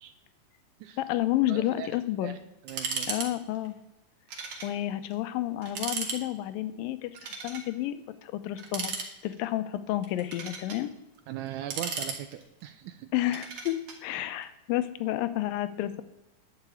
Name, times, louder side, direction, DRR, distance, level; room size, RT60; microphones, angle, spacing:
voice 1, 1.0-2.3 3.1-3.7 4.6-9.0 9.2-10.9 13.1-16.0, left 14 dB, 80° left, 13 dB, 2.4 m, -30 dB
voice 2, 1.5-2.4 2.6-3.2 11.3-13.1, right 11 dB, 80° right, 9 dB, 1.8 m, -40 dB
sound 1, 2.7-3.3 3.5-3.7 4.3-4.7 5.1-5.2 5.6-6.2 7.1-7.7 8.6-9.4 10.0-10.8 11.5-12.6 13.3-14.0, right 5 dB, 50° right, 2.1 m, -35 dB
10.5 x 5.8 x 8.3 m, 0.96 s
omnidirectional pair, 4.1 m